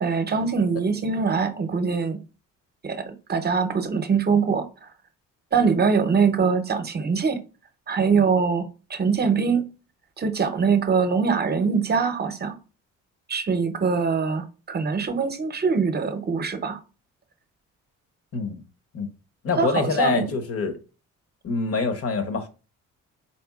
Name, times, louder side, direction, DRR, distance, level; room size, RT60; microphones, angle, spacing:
voice 1, 0.0-2.2 2.8-4.9 5.5-7.4 7.9-9.7 10.2-12.5 13.3-16.8 19.6-20.3, right 5 dB, 35° right, 0.8 m, -23 dB
voice 2, 19.4-20.8 21.4-22.5, left 4 dB, 50° left, 0.9 m, -25 dB
4.3 x 3.6 x 2.4 m
cardioid pair, 90°, 30 cm